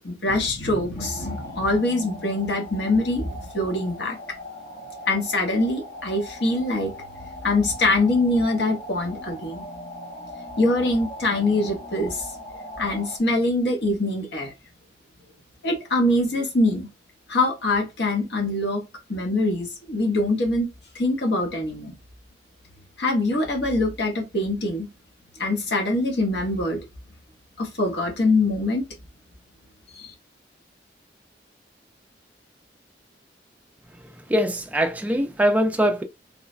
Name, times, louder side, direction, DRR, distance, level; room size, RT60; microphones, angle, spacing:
voice 1, 0.0-4.2 5.1-6.9 7.4-9.6 10.6-12.3 12.8-14.5 15.6-16.9 17.3-20.7 20.9-21.9 23.0-24.9 25.4-26.8 27.6-28.8 29.9-30.1, left 2 dB, 65° left, 0.9 m, -24 dB
sound 1, 1.0-13.2, left 1 dB, 40° left, 0.7 m, -40 dB
voice 2, 33.9-36.0, equal, 10° right, 0.3 m, -23 dB
3.1 x 2.1 x 2.4 m
head